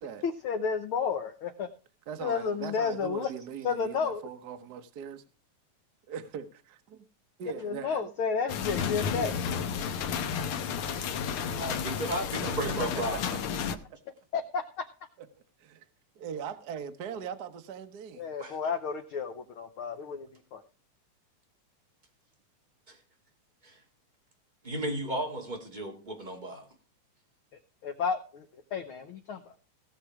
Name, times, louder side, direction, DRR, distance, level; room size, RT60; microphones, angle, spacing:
voice 1, 0.2-1.7 2.2-3.3 3.6-4.2 7.6-9.3 14.3-14.6 18.2-20.6 27.8-28.4 28.7-29.5, left 5 dB, 90° left, 1.1 m, -31 dB
voice 2, 2.1-5.2 6.1-7.0 7.4-8.1 9.2-9.4 12.4-12.7 13.7-13.8 15.6-15.8 16.1-18.3, right 7 dB, 75° right, 0.9 m, -40 dB
sound 1, 8.5-13.8, left 7 dB, 65° left, 1.4 m, -32 dB
voice 3, 11.6-13.2 18.4-18.6 22.9-23.0 23.6-23.8 24.6-26.7, right 1 dB, 15° right, 2.4 m, -34 dB
17.5 x 6.8 x 4.8 m
omnidirectional pair, 3.5 m